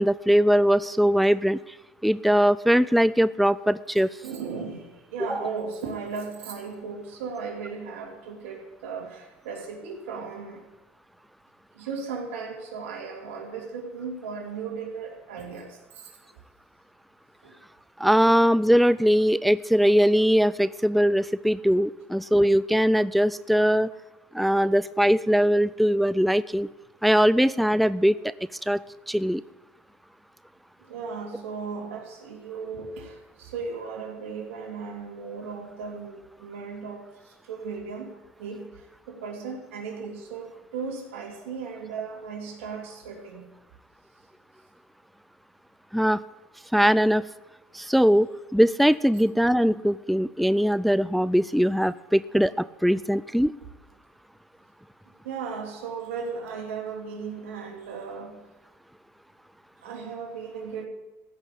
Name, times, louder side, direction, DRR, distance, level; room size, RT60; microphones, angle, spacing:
voice 1, 0.0-1.8 2.0-4.1 5.3-5.4 18.0-23.9 24.3-26.7 27.0-28.3 28.6-29.4 45.9-46.2 46.7-47.3 47.7-53.5, equal, ahead, 16 dB, 0.3 m, -21 dB
voice 2, 4.2-10.7 11.7-16.1 17.4-17.6 30.8-43.5 55.2-58.4 59.8-60.9, right 5 dB, 85° right, 1 dB, 2.8 m, -36 dB
15.0 x 6.1 x 8.3 m, 1.1 s
supercardioid pair, 90°, 7 cm